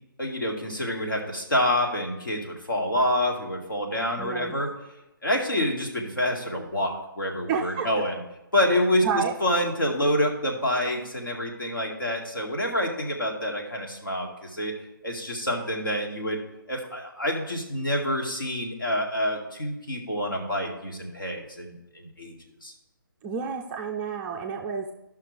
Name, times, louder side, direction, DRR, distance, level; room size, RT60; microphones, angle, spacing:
voice 1, 0.2-4.7 5.2-8.2 8.5-14.7 15.0-16.4 16.7-22.3 22.6-22.7, left 1 dB, 70° left, 0 dB, 2.1 m, -27 dB
voice 2, 4.2-4.5 7.5-7.9 8.8-9.3 23.2-24.9, right 6 dB, 10° right, 1 dB, 0.4 m, -30 dB
13.0 x 5.8 x 3.4 m, 0.93 s
figure-of-eight pair, 140°, 12 cm